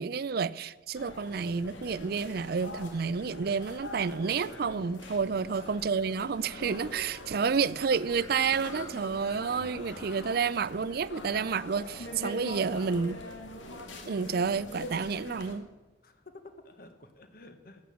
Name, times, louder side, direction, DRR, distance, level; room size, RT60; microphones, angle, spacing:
voice 1, 0.0-13.2 14.1-15.7, right 5 dB, 55° right, 0.4 m, -30 dB
sound 1, 1.0-15.5, left 1 dB, 85° left, 2.1 m, -43 dB
Bird, 6.2-11.5, left 4 dB, 15° left, 0.6 m, -53 dB
voice 2, 16.0-17.8, left 2 dB, 50° left, 1.4 m, -52 dB
14.5 x 8.8 x 7.2 m
head